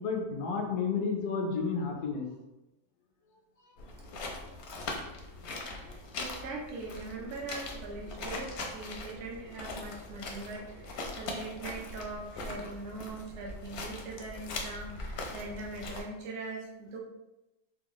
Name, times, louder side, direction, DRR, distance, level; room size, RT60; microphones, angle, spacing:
voice 1, 0.0-2.3, left 5 dB, 90° left, 0 dB, 1.2 m, -31 dB
sound 1, 3.8-16.0, left 2 dB, 65° left, 0.7 m, -41 dB
voice 2, 5.8-17.0, right 3 dB, 60° right, -2 dB, 0.9 m, -41 dB
3.5 x 2.2 x 3.0 m, 0.96 s
omnidirectional pair, 1.6 m